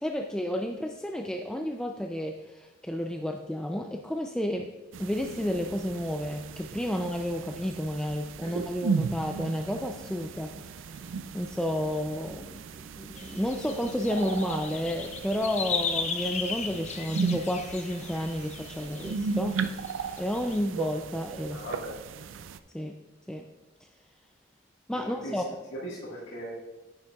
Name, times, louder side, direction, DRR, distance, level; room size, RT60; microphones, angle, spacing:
voice 1, 0.0-4.7 5.0-10.9 11.3-19.6 20.2-21.6 22.7-22.9 23.3-23.5 24.9-25.5, equal, 5° left, 2 dB, 0.3 m, -31 dB
sound 1, 4.9-22.6, right 4 dB, 85° right, 0.4 m, -36 dB
sound 2, 13.2-20.6, left 5 dB, 35° left, 0.7 m, -37 dB
voice 2, 21.5-22.0 24.9-25.4 25.7-26.5, equal, 75° left, -7 dB, 1.6 m, -39 dB
9.6 x 8.7 x 2.3 m, 1.1 s
head